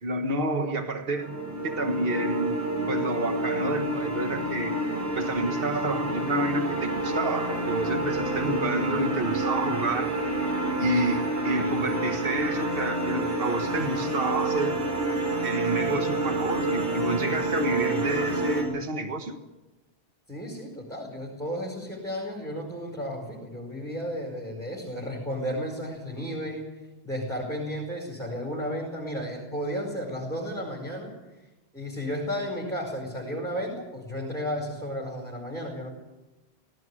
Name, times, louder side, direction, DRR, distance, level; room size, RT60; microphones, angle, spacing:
voice 1, 0.0-1.4 1.6-2.6 2.9-4.8 5.1-10.1 10.8-14.8 15.4-19.4, right 2 dB, 60° right, 6 dB, 1.7 m, -29 dB
sound 1, 1.2-18.6, right 2 dB, 85° right, 6.0 m, -28 dB
voice 2, 20.3-31.1 31.7-35.9, equal, 5° left, -3 dB, 5.1 m, -33 dB
18.0 x 17.5 x 9.9 m, 1.1 s
omnidirectional pair, 1.1 m